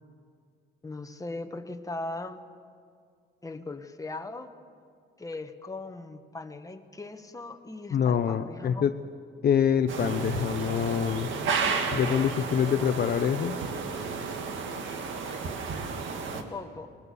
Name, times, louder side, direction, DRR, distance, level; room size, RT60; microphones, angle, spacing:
voice 1, 0.8-2.4 3.4-4.5 5.2-8.9 15.3-15.5 16.3-16.9, left 2 dB, 15° left, 6 dB, 1.3 m, -39 dB
voice 2, 7.9-8.9 9.4-11.3 11.9-13.6, left 8 dB, 50° left, 8 dB, 0.8 m, -25 dB
sound 1, 9.9-16.4, right 5 dB, 75° right, 1.8 m, -32 dB
20.0 x 19.5 x 6.9 m, 2.3 s
cardioid pair, 90°, 20 cm